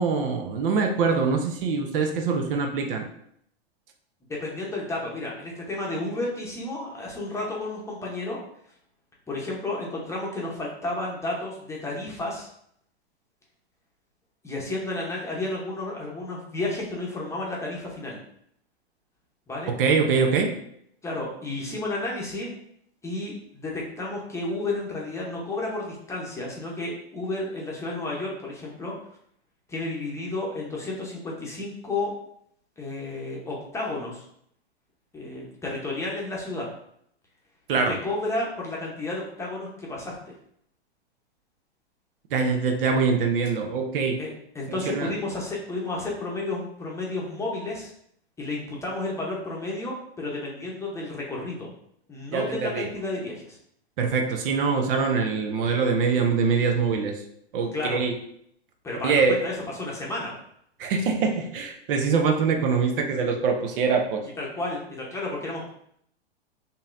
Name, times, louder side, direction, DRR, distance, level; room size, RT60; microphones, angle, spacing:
voice 1, 0.0-3.0 19.8-20.5 37.7-37.9 42.3-44.2 44.9-45.1 52.3-52.9 54.0-57.2 57.5-58.1 59.0-59.4 60.8-64.3, right 5 dB, 55° right, 4 dB, 0.8 m, -24 dB
voice 2, 4.3-8.4 9.3-12.5 14.4-18.2 19.5-19.7 21.0-22.5 23.0-28.9 29.7-32.1 32.8-34.2 35.1-36.7 37.9-40.1 44.2-47.9 48.4-51.7 52.1-53.6 57.7-58.0 58.8-60.3 64.4-65.7, left 2 dB, 10° left, -3 dB, 0.9 m, -32 dB
5.3 x 2.8 x 2.6 m, 0.69 s
hypercardioid pair, 130°, 32 cm